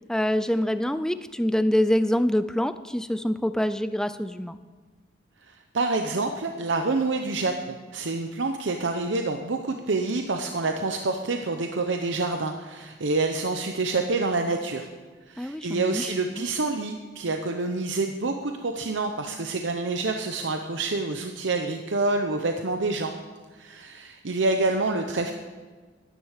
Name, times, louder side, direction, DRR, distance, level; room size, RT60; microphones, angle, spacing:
voice 1, 0.1-4.6 15.4-16.4, left 1 dB, 5° left, 12 dB, 0.4 m, -25 dB
voice 2, 5.4-14.9 15.3-23.1 23.5-25.3, right 3 dB, 80° right, 5 dB, 0.8 m, -27 dB
12.0 x 10.0 x 6.5 m, 1.4 s
head